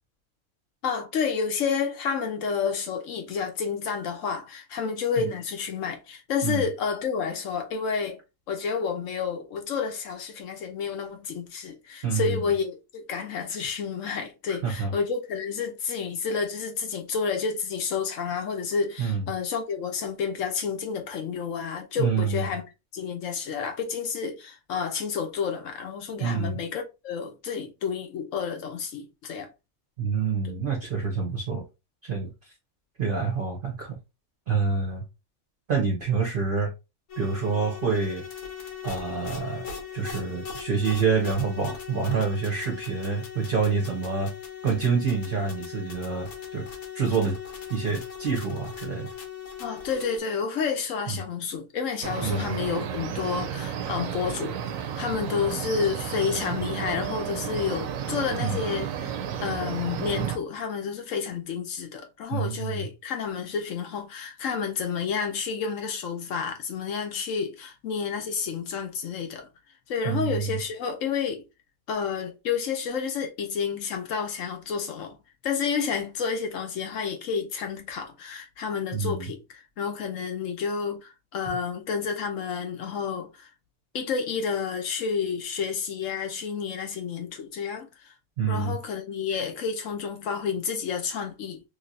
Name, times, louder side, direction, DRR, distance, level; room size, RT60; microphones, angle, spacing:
voice 1, 0.8-8.2 8.5-22.6 22.9-29.5 30.4-30.5 49.6-59.1 59.4-69.5 69.9-71.4 71.9-75.2 75.4-83.5 83.9-88.1 88.5-91.6, left 6 dB, 70° left, 1.0 m, -30 dB
voice 2, 12.0-12.4 14.5-14.9 19.0-19.2 22.0-22.5 26.2-26.6 30.0-31.6 32.0-32.5 33.0-34.0 34.5-35.0 35.7-36.7 37.2-38.2 38.8-39.7 39.9-44.3 44.6-46.7 46.9-47.4 47.7-49.1 51.1-51.2 52.2-52.5 58.4-58.6 62.3-62.9 70.0-70.6 78.9-79.3 88.4-88.8, right 5 dB, 45° right, 0.8 m, -27 dB
sound 1, 37.1-50.2, left 7 dB, 85° left, 1.4 m, -39 dB
sound 2, 52.0-60.4, right 8 dB, 75° right, 0.9 m, -32 dB
3.2 x 2.8 x 2.6 m
omnidirectional pair, 1.5 m